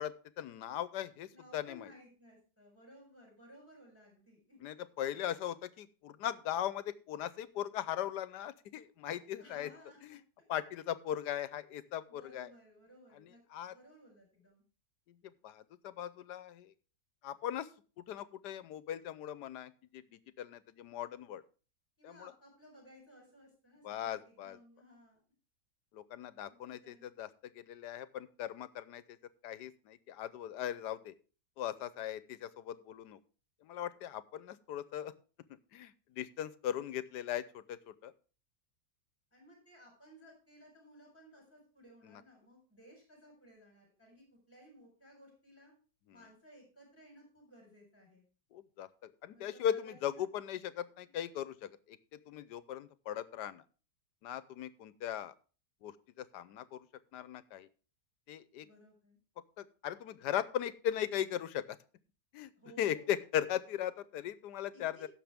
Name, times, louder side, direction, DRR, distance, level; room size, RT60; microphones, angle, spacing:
voice 1, 0.0-1.9 4.6-9.7 10.0-10.2 10.5-12.5 13.1-13.7 15.1-16.7 17.2-17.7 18.0-21.4 22.0-22.3 23.8-24.6 25.9-29.2 29.4-31.1 31.6-33.2 33.6-35.1 35.5-38.1 42.0-42.2 46.1-46.2 48.5-53.6 54.2-55.3 55.8-56.9 57.1-57.7 58.3-58.7 59.6-61.8 62.3-62.5 62.8-65.1, left 11 dB, 85° left, 15 dB, 1.3 m, -39 dB
voice 2, 1.3-4.6 9.4-10.2 12.1-13.4 13.7-14.6 22.0-25.2 26.5-26.6 26.8-27.1 39.3-45.7 46.1-48.2 49.3-50.2 50.9-51.1 58.6-59.2 62.6-63.1 64.7-65.1, equal, 5° left, 0 dB, 4.3 m, -58 dB
16.0 x 6.8 x 3.5 m, 0.37 s
omnidirectional pair, 1.8 m